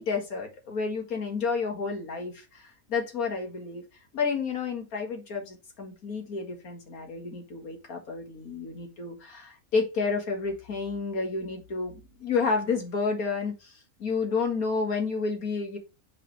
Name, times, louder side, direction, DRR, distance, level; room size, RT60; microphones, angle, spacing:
voice 1, 0.0-3.8 4.1-13.7 14.0-15.8, left 4 dB, 85° left, 2.2 m, -30 dB
6.5 x 5.4 x 3.1 m
omnidirectional pair, 1.5 m